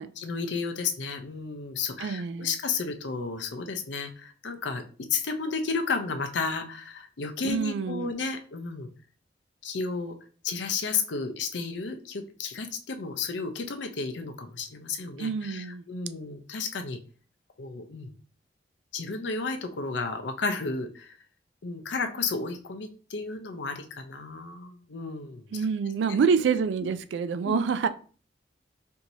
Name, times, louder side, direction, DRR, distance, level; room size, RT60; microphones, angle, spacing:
voice 1, 0.2-4.8 5.1-8.9 9.6-10.2 10.4-17.0 17.6-18.1 18.9-21.1 21.6-25.5 27.4-27.6, left 4 dB, 85° left, 0.6 m, -32 dB
voice 2, 2.0-2.6 7.4-8.1 15.2-15.8 25.5-27.9, right 6 dB, 85° right, 0.3 m, -27 dB
4.5 x 2.7 x 2.7 m
head